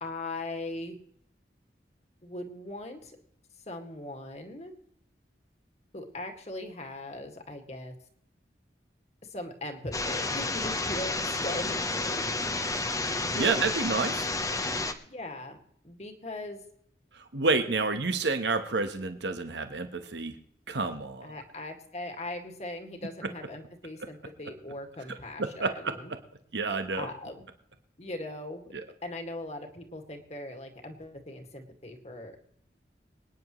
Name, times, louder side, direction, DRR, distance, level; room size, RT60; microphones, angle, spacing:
voice 1, 0.0-1.0 2.2-3.2 3.7-4.7 5.9-8.0 9.2-12.3 12.6-13.6 15.1-15.6 15.8-16.6 21.2-26.1 26.9-27.4 28.0-28.6 29.0-32.4, left 1 dB, 40° left, 4 dB, 2.0 m, -39 dB
sound 1, 9.9-14.9, left 2 dB, 20° left, 0.9 m, -30 dB
voice 2, 13.3-14.3 17.1-20.3 20.7-21.4 25.6-25.9 26.5-27.1, right 3 dB, 85° right, 7 dB, 1.2 m, -29 dB
25.5 x 10.0 x 3.1 m, 0.68 s
head